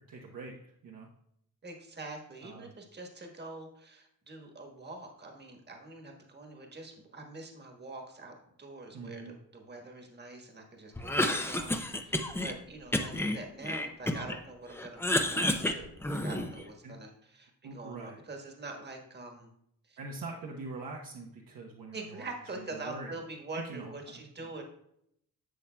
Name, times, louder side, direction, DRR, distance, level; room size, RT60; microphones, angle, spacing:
voice 1, 0.1-1.1 2.4-2.7 8.9-9.3 16.8-16.9 17.6-18.2 20.0-22.3 22.7-23.1 23.5-24.5, right 3 dB, 70° right, -2 dB, 1.0 m, -43 dB
voice 2, 1.6-19.5 19.8-20.0 21.9-24.6, right 2 dB, 30° right, 3 dB, 1.4 m, -45 dB
Cough, 11.0-12.5 12.9-14.4 14.7-16.6, left 1 dB, 5° left, 0.5 m, -30 dB
11.5 x 7.1 x 2.3 m, 0.74 s
cardioid pair, 105°, 36 cm